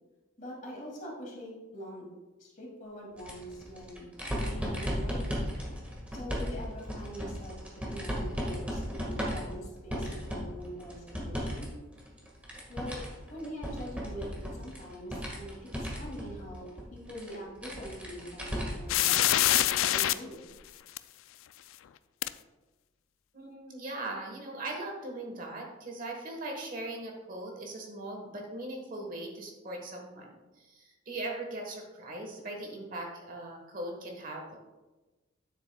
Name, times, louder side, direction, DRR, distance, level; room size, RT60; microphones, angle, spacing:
voice 1, 0.4-2.0 2.4-5.5 6.1-7.6 7.9-11.7 12.7-20.4, equal, 40° left, -3 dB, 2.3 m, -43 dB
sound 1, 3.2-11.6 12.0-19.0 19.4-19.5 20.7-20.8, equal, 5° right, 1.5 m, -36 dB
sound 2, 18.9-20.1 21.0-21.1 22.2-22.3, left 13 dB, 75° left, 0.3 m, -24 dB
voice 2, 23.3-34.5, right 2 dB, 40° right, 1 dB, 1.2 m, -40 dB
9.7 x 8.0 x 2.2 m, 1.2 s
head